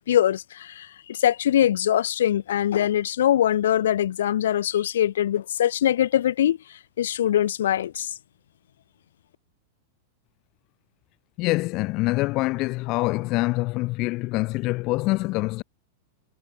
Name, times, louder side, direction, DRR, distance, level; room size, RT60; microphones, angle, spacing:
voice 1, 0.0-6.6 7.0-8.1, left 11 dB, 85° left, 1.3 m, -22 dB
voice 2, 11.4-15.6, left 22 dB, 35° left, 0.6 m, -25 dB
supercardioid pair, 165°, 0 cm